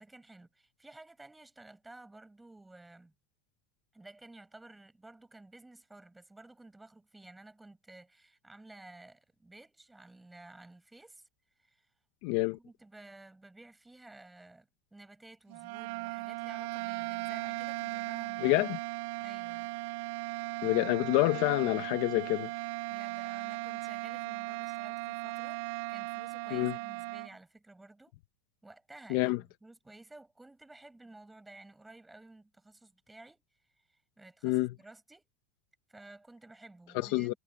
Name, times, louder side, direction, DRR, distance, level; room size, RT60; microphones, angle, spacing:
voice 1, 0.0-3.1 3.9-11.2 11.6-11.9 12.3-18.7 19.2-19.7 22.9-28.2 28.6-33.4 33.8-35.2 35.9-37.4, right 2 dB, 5° right, 7.5 m, -54 dB
voice 2, 12.2-12.6 18.4-18.8 20.6-22.5 26.5-26.8 29.1-29.4 34.4-34.7 36.9-37.3, left 20 dB, 50° left, 1.0 m, -27 dB
sound 1, 15.5-27.3, right 23 dB, 55° right, 0.4 m, -37 dB
supercardioid pair, 170°, 0 cm